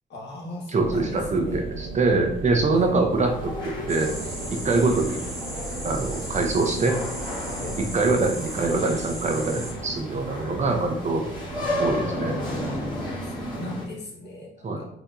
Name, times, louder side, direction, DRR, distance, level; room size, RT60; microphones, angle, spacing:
voice 1, 0.1-1.6 2.7-2.9 4.7-4.9 7.6-7.9 13.2-14.8, left 1 dB, 60° left, -3 dB, 1.3 m, -37 dB
voice 2, 0.7-4.1 4.6-5.2 5.8-7.0 7.9-11.2 11.8-12.4 14.6-14.8, right 3 dB, 35° right, 3 dB, 0.6 m, -24 dB
sound 1, 0.8-12.8, right 4 dB, 80° right, 0.5 m, -37 dB
sound 2, 3.1-13.9, left 1 dB, 20° left, 1.3 m, -33 dB
sound 3, 3.9-9.7, right 1 dB, ahead, 1.2 m, -37 dB
4.5 x 2.7 x 2.5 m, 0.72 s
cardioid pair, 90°, 20 cm